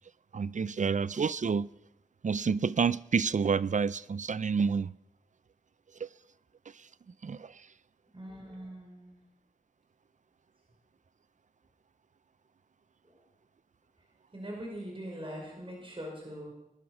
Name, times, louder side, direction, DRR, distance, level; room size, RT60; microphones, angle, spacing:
voice 1, 0.3-1.7 2.2-4.9 6.0-6.1 6.7-6.9 7.2-7.7, right 5 dB, 60° right, 0.5 m, -29 dB
voice 2, 8.1-9.2 13.0-13.2 14.3-16.5, equal, 35° right, 5.5 m, -42 dB
20.5 x 11.0 x 6.2 m
wide cardioid pair, 55°, 15 cm